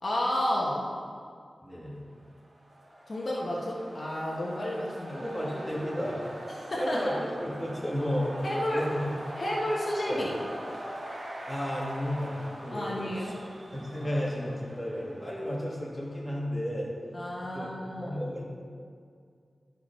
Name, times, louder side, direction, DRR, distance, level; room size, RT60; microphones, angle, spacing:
voice 1, 0.0-0.9 3.1-5.2 6.7-7.2 8.4-8.8 9.4-10.3 12.7-13.4 14.0-14.1 17.1-18.2, left 1 dB, 55° left, -4 dB, 1.3 m, -31 dB
voice 2, 1.6-2.0 5.1-6.2 6.7-8.5 8.7-9.1 10.0-10.2 11.5-13.3 13.7-16.9 17.4-17.7 18.0-18.4, equal, 5° left, -6 dB, 2.4 m, -33 dB
sound 1, 2.3-16.0, right 1 dB, 45° right, 1.6 m, -43 dB
12.0 x 4.7 x 5.5 m, 2.2 s
wide cardioid pair, 95°, 0 cm